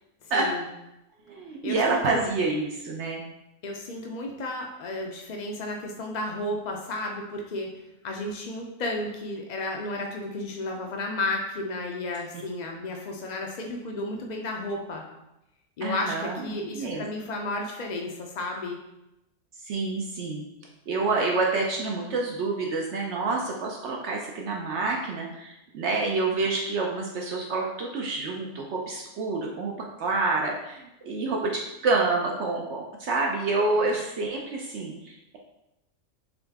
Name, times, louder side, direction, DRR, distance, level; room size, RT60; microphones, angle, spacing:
voice 1, 0.2-0.7 1.6-2.2 3.6-7.7 8.0-15.0 15.8-18.8 33.8-33.9, left 2 dB, 75° left, 1 dB, 0.4 m, -33 dB
voice 2, 1.3-3.2 15.8-17.0 19.6-20.4 20.9-29.7 30.0-35.4, right 3 dB, 65° right, 0 dB, 0.8 m, -28 dB
3.9 x 3.5 x 3.4 m, 0.91 s
omnidirectional pair, 1.4 m